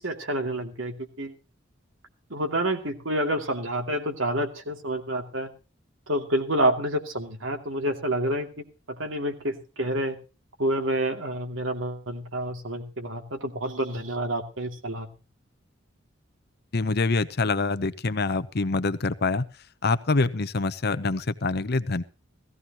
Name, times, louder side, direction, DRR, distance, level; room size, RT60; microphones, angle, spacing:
voice 1, 0.0-1.3 2.3-5.5 6.1-10.2 10.6-15.1, right 1 dB, 75° right, 4 dB, 2.6 m, -28 dB
voice 2, 16.7-19.5 19.8-22.0, left 3 dB, 55° left, 13 dB, 0.8 m, -25 dB
17.5 x 15.0 x 3.0 m, 0.31 s
head